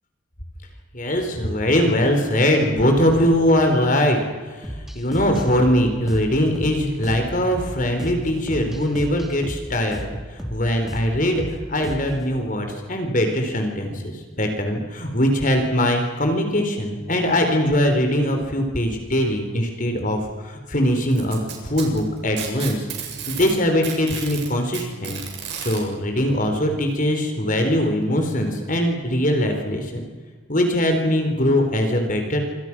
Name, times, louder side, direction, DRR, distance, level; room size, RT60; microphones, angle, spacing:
voice 1, 0.9-4.2 4.5-11.4 11.7-22.8 23.3-25.2 25.6-30.0 30.5-32.4, equal, 40° left, 4 dB, 4.2 m, -21 dB
sound 1, 4.6-12.2, equal, ahead, 3.1 m, -34 dB
Packing tape duct tape, 21.1-23.5 23.8-25.8 26.9-27.0 27.5-27.6 28.5-28.6, right 8 dB, 60° right, 7.6 m, -32 dB
28.5 x 27.0 x 6.2 m, 1.4 s
head